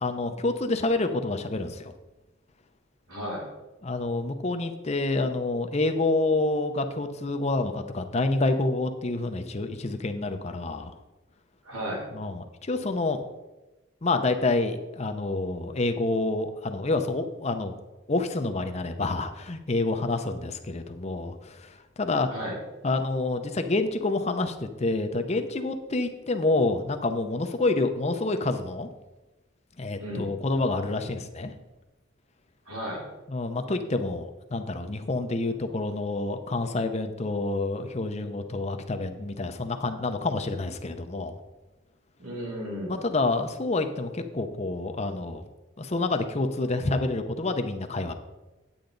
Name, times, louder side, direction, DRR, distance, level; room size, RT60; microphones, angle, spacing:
voice 1, 0.0-1.9 3.8-10.9 12.1-13.2 14.0-17.8 18.1-22.3 22.8-28.9 29.8-31.5 33.3-41.4 42.9-45.4 45.8-48.1, left 2 dB, 30° left, 7 dB, 0.6 m, -28 dB
voice 2, 3.1-3.5 11.6-12.0 22.3-22.6 30.0-30.3 32.7-33.1 42.2-43.0, equal, 85° right, -3 dB, 3.5 m, -34 dB
9.3 x 8.6 x 3.9 m, 1.1 s
head